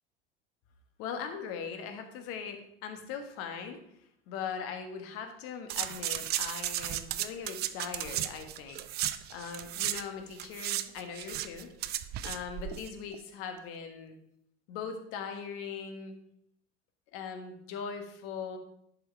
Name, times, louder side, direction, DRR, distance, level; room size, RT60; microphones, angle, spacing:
voice 1, 1.0-3.8 4.3-11.7 12.2-14.1 14.7-16.1 17.1-18.6, left 6 dB, 50° left, 6 dB, 1.4 m, -40 dB
sound 1, 5.7-10.0 10.3-12.9 13.1-13.2, right 13 dB, 35° right, 0.5 m, -35 dB
11.0 x 4.8 x 4.3 m, 0.73 s
figure-of-eight pair, 75°, 30 cm